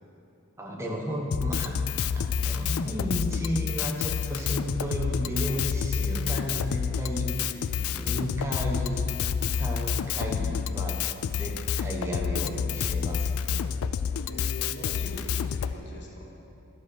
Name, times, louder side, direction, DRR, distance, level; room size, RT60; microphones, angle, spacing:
voice 1, 0.6-1.8 2.1-9.1 9.5-13.6, equal, 15° right, -1 dB, 1.1 m, -33 dB
Drum kit, 1.3-15.7, left 7 dB, 80° left, 0.3 m, -29 dB
voice 2, 7.2-8.3 14.1-16.3, left 1 dB, 55° left, -1 dB, 1.4 m, -43 dB
11.5 x 5.1 x 6.4 m, 2.8 s
head